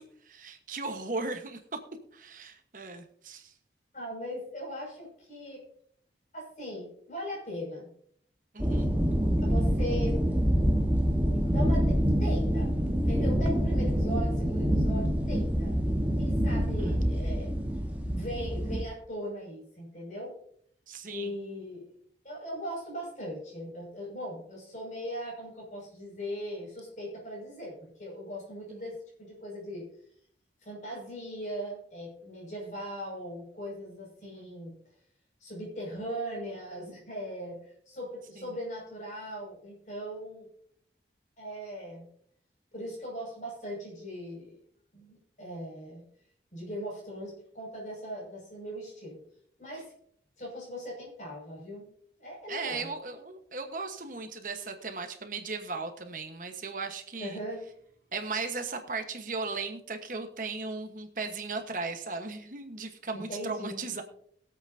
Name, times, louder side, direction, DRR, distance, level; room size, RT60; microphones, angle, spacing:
voice 1, 0.2-1.8 2.1-3.5 8.5-8.9 16.8-17.0 20.9-21.3 28.7-28.8 34.2-34.5 38.4-38.5 52.5-57.4 58.1-64.0, right 3 dB, 50° right, 6 dB, 1.2 m, -37 dB
voice 2, 3.9-5.6 6.3-7.9 9.4-10.2 11.5-12.7 13.1-15.8 16.2-17.5 18.0-20.4 21.1-21.9 22.2-29.9 30.6-34.8 35.4-40.5 41.4-42.1 42.7-44.6 44.9-46.1 46.5-49.2 49.6-49.9 50.4-51.9 52.2-52.9 57.2-57.7 63.1-63.8, equal, 45° left, -2 dB, 5.9 m, -39 dB
sound 1, 8.6-18.8, equal, 10° right, 1.2 m, -26 dB
22.0 x 8.1 x 2.7 m, 0.64 s
head